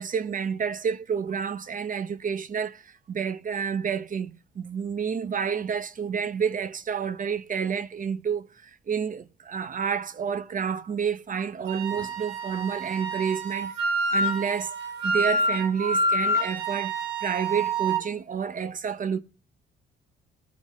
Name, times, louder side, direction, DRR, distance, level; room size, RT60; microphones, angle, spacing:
voice 1, 0.0-13.7 14.1-14.7 15.0-19.2, right 7 dB, 40° right, 0.9 m, -29 dB
Wind instrument woodwind instrument, 11.7-18.0, right 1 dB, 90° right, 3.6 m, -27 dB
20.5 x 9.3 x 3.1 m
cardioid pair, 90°, 20 cm